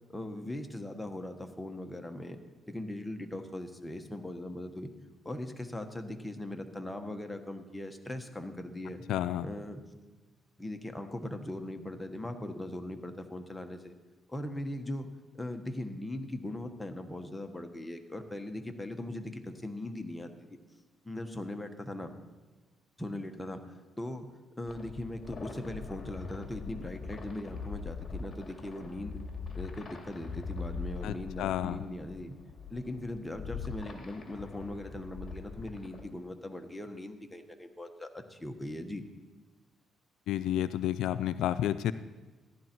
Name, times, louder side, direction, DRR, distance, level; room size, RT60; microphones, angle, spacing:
voice 1, 0.1-2.4 2.7-4.9 5.2-9.0 9.4-9.8 10.6-13.9 14.3-15.1 15.3-20.6 21.0-22.1 23.0-23.6 24.0-24.3 24.6-29.2 29.5-32.4 32.7-39.0, left 1 dB, 10° left, 6 dB, 1.3 m, -40 dB
voice 2, 9.1-9.5 31.0-31.8 40.3-41.9, left 11 dB, 85° left, 13 dB, 0.4 m, -31 dB
sound 1, 24.7-36.0, left 5 dB, 40° left, 2.3 m, -42 dB
14.5 x 11.0 x 4.6 m, 1.2 s
cardioid pair, 90°, 0 cm